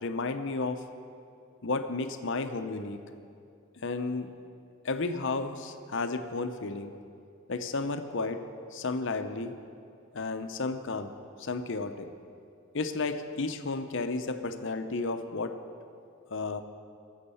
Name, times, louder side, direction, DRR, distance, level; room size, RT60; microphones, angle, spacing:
voice 1, 0.0-0.8 1.6-3.0 3.8-4.3 4.8-6.9 7.5-8.4 8.7-9.6 10.1-11.1 11.4-12.1 12.7-15.6 16.3-16.6, left 3 dB, 55° left, 9 dB, 0.7 m, -32 dB
17.0 x 7.4 x 7.0 m, 2.5 s
head